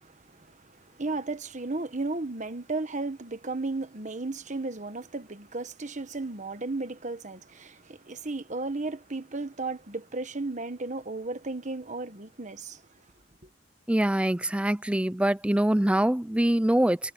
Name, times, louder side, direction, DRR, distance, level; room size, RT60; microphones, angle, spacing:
voice 1, 0.0-12.8, right 3 dB, 40° right, 1.4 m, -34 dB
voice 2, 13.9-17.1, right 1 dB, 5° right, 0.5 m, -24 dB
head